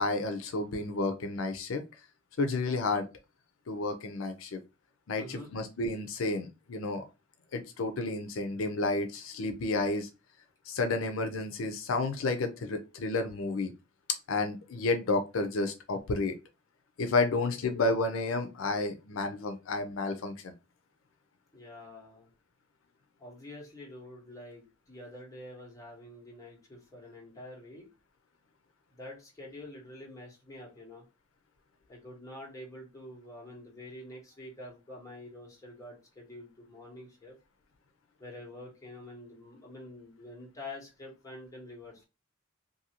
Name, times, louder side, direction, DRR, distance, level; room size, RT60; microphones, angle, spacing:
voice 1, 0.0-1.8 2.4-3.1 3.7-4.6 5.1-7.0 7.5-10.1 10.7-13.7 14.3-16.4 17.0-20.5, left 3 dB, 85° left, 7 dB, 0.5 m, -31 dB
voice 2, 5.2-5.5 17.3-17.5 21.5-22.3 23.2-27.9 28.9-31.0 31.9-37.4 38.2-42.1, left 1 dB, 15° left, -2 dB, 1.2 m, -47 dB
2.6 x 2.6 x 2.8 m, 0.27 s
head